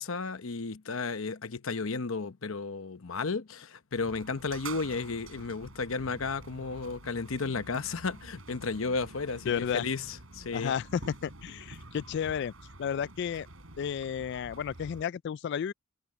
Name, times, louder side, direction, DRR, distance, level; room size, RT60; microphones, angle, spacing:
voice 1, 0.0-10.7, left 4 dB, 75° left, 0.9 m, -33 dB
sound 1, 4.0-15.0, right 2 dB, 80° right, 4.8 m, -48 dB
voice 2, 9.5-9.8 10.5-12.5 12.8-13.5 13.8-15.7, left 8 dB, 55° left, 0.3 m, -32 dB
head